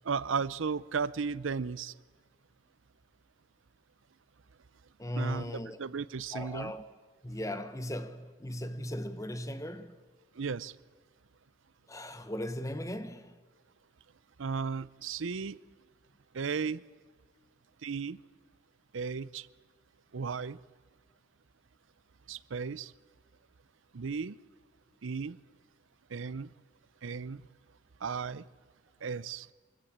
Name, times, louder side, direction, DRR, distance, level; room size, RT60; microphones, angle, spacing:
voice 1, 0.0-1.9 5.2-6.7 10.4-10.7 14.4-15.6 16.3-16.8 17.8-18.2 18.9-19.5 20.1-20.6 22.3-22.9 23.9-24.4 25.0-25.4 26.1-26.5 27.0-27.4 28.0-28.4 29.0-29.5, right 5 dB, 85° right, 0.6 m, -35 dB
voice 2, 5.0-5.8 6.3-6.9 7.2-10.0 11.9-13.4, left 1 dB, 15° left, 0.9 m, -37 dB
24.0 x 14.0 x 8.7 m
head